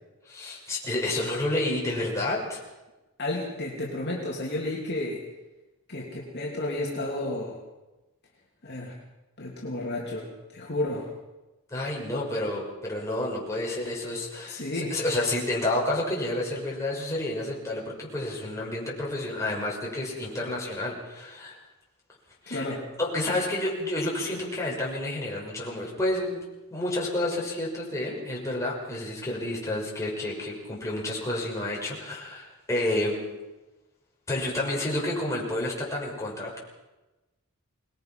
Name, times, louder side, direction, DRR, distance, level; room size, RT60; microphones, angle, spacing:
voice 1, 0.2-2.6 11.7-21.6 22.4-22.6 23.0-26.4 26.7-33.2 34.3-36.6, left 1 dB, 15° left, -4 dB, 6.1 m, -30 dB
voice 2, 3.2-5.2 5.9-7.6 8.6-9.0 9.4-11.1 14.5-14.9 22.5-22.9, left 1 dB, 50° left, -3 dB, 3.1 m, -32 dB
25.5 x 20.0 x 5.9 m, 1.1 s
head